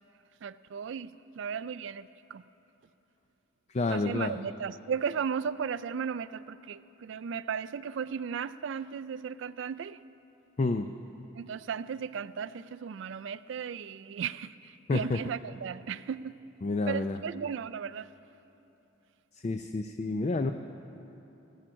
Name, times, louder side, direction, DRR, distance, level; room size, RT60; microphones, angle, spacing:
voice 1, 0.4-2.4 3.9-10.0 11.4-16.4 16.9-18.1, right 7 dB, 55° right, 15 dB, 0.3 m, -36 dB
voice 2, 3.7-4.3 10.6-10.9 14.9-15.2 16.6-17.2 19.4-20.5, left 3 dB, 30° left, 7 dB, 0.4 m, -29 dB
18.5 x 8.8 x 6.2 m, 2.9 s
head